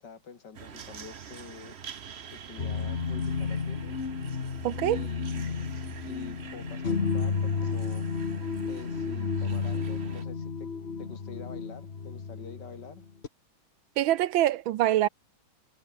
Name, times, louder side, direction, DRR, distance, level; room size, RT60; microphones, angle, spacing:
voice 1, 0.0-1.7 2.3-4.0 4.9-5.6 6.1-8.0 8.7-10.7 11.0-13.0, left 5 dB, 55° left, 2.8 m, -47 dB
sound 1, 0.5-10.2, right 7 dB, 45° right, 0.9 m, -46 dB
sound 2, 2.6-13.3, left 5 dB, 35° left, 1.7 m, -32 dB
voice 2, 4.6-5.1 14.0-15.1, right 13 dB, 75° right, 1.5 m, -25 dB
omnidirectional pair, 2.2 m